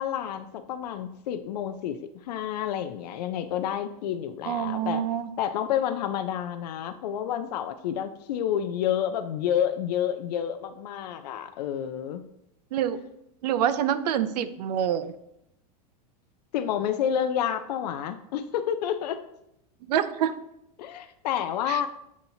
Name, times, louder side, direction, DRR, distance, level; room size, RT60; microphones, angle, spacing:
voice 1, 0.0-2.0 2.2-5.0 5.4-12.2 16.5-19.2 20.8-21.9, left 9 dB, 90° left, 9 dB, 0.4 m, -29 dB
voice 2, 4.5-5.3 12.7-13.0 13.4-15.1 19.9-20.3 21.7-21.8, right 9 dB, 90° right, 12 dB, 0.5 m, -26 dB
7.1 x 2.8 x 2.7 m, 0.80 s
supercardioid pair, 150°, 20 cm